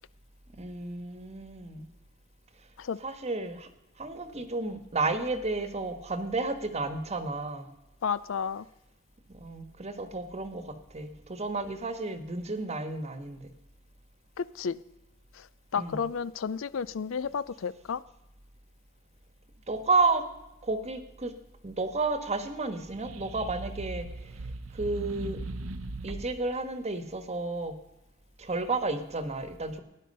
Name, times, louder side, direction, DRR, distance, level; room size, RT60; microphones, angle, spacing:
voice 1, 0.6-1.9 2.6-2.7 3.0-3.7 4.0-7.7 9.3-13.5 15.7-16.0 19.7-20.3 20.6-21.3 21.6-25.4 26.0-27.7 28.4-29.8, right 3 dB, 35° right, 1.3 m, -32 dB
voice 2, 8.0-8.7 14.4-14.8 15.3-15.5 15.7-18.0, left 6 dB, 70° left, 0.4 m, -32 dB
sound 1, 22.8-26.5, right 2 dB, 80° right, 0.8 m, -39 dB
17.5 x 10.5 x 5.4 m
head